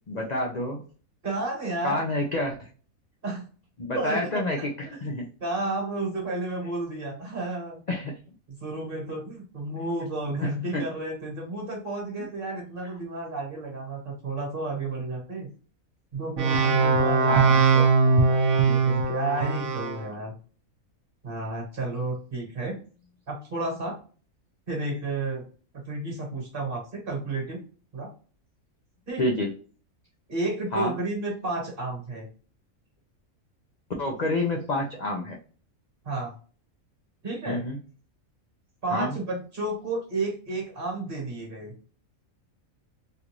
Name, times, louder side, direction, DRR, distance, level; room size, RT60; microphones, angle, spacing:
voice 1, 0.1-0.8 1.8-2.7 3.8-5.2 7.9-8.1 10.4-10.8 17.3-17.6 29.2-29.5 30.7-30.9 34.0-35.4 37.5-37.8 38.9-39.1, left 1 dB, 55° left, 0 dB, 0.4 m, -28 dB
voice 2, 1.2-2.0 3.2-3.4 3.9-4.2 5.4-7.8 8.6-15.5 16.1-17.9 18.6-20.3 21.2-22.8 23.3-24.0 24.7-25.4 25.8-27.6 27.9-28.1 29.1-29.2 30.3-32.3 36.0-36.3 37.2-37.6 38.8-41.7, right 2 dB, 40° right, 0 dB, 1.3 m, -31 dB
sound 1, 16.4-20.0, right 4 dB, 55° right, 0.6 m, -21 dB
3.3 x 2.5 x 2.9 m, 0.39 s
omnidirectional pair, 1.5 m